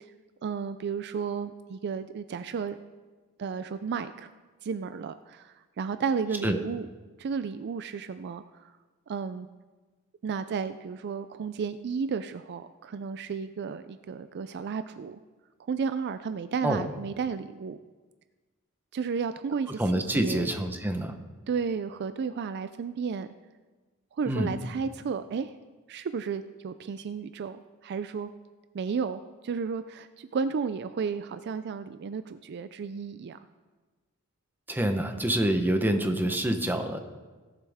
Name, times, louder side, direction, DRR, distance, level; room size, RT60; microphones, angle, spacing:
voice 1, 0.4-2.8 3.4-4.3 4.6-6.9 7.2-8.7 9.1-9.5 10.2-15.2 15.7-17.8 18.9-19.8 20.1-20.5 21.5-23.3 24.2-25.5 25.9-28.3 28.7-33.4, right 6 dB, 50° right, 12 dB, 0.4 m, -33 dB
voice 2, 19.8-21.2 24.3-24.5 34.7-37.0, right 1 dB, 10° right, 6 dB, 0.9 m, -26 dB
17.5 x 7.4 x 3.5 m, 1.3 s
head